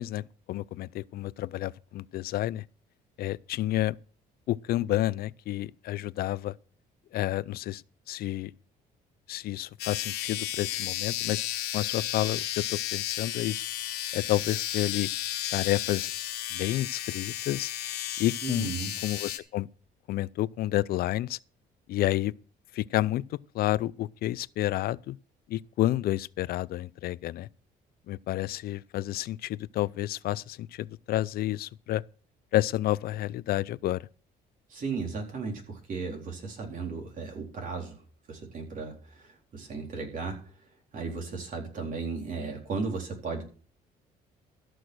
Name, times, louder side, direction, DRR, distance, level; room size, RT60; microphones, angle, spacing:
voice 1, 0.0-2.6 3.2-4.0 4.5-6.6 7.1-7.8 8.1-8.5 9.3-11.4 11.7-13.6 14.1-15.1 15.5-16.1 16.5-17.7 18.2-18.7 19.0-19.7 20.1-21.4 21.9-22.3 22.7-25.2 25.5-27.5 28.1-32.0 32.5-34.0, left 15 dB, 65° left, 0.5 m, -30 dB
sound 1, 9.8-19.4, left 14 dB, 85° left, 1.2 m, -33 dB
voice 2, 18.4-18.9 34.7-38.0 38.3-40.4 40.9-43.4, right 4 dB, 55° right, 4.0 m, -35 dB
14.0 x 6.2 x 6.3 m
cardioid pair, 110°, 17 cm